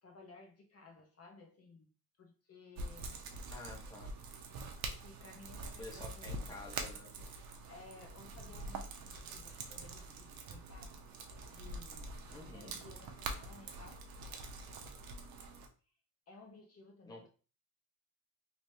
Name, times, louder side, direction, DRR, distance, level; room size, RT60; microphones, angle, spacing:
voice 1, 0.0-1.9 2.2-3.2 3.7-3.9 4.9-6.6 7.7-11.0 11.5-14.3 16.3-17.3, left 3 dB, 40° left, 3 dB, 0.8 m, -57 dB
sound 1, 2.8-15.7, right 3 dB, 60° right, 0.8 m, -45 dB
voice 2, 3.5-4.1 5.8-7.1 12.3-12.7 17.1-17.3, left 3 dB, 10° left, -1 dB, 0.7 m, -50 dB
3.2 x 3.0 x 2.7 m, 0.37 s
cardioid pair, 110°, 39 cm